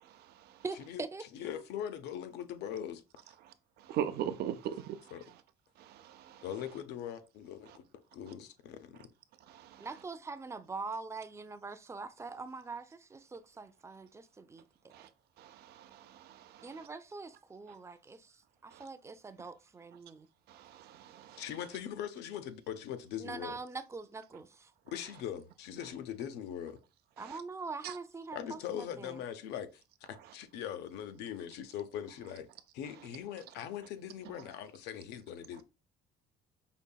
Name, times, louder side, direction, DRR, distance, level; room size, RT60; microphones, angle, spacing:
voice 1, 0.0-0.6 3.4-3.5 3.8-5.1 5.8-6.4 9.5-9.9 14.9-15.1 15.4-16.9 18.7-18.8 20.5-21.4 27.2-27.4 27.8-27.9, right 10 dB, 70° right, 0.5 m, -41 dB
voice 2, 0.6-1.3 9.8-15.1 16.6-20.3 23.2-24.7 27.2-29.2, right 4 dB, 15° right, 0.4 m, -43 dB
voice 3, 1.3-3.0 5.1-5.3 6.4-7.8 8.1-9.1 21.4-23.6 24.9-26.8 28.3-29.8 30.1-32.5 32.7-35.6, left 9 dB, 85° left, 0.5 m, -41 dB
5.2 x 2.7 x 2.2 m
cardioid pair, 110°, 17 cm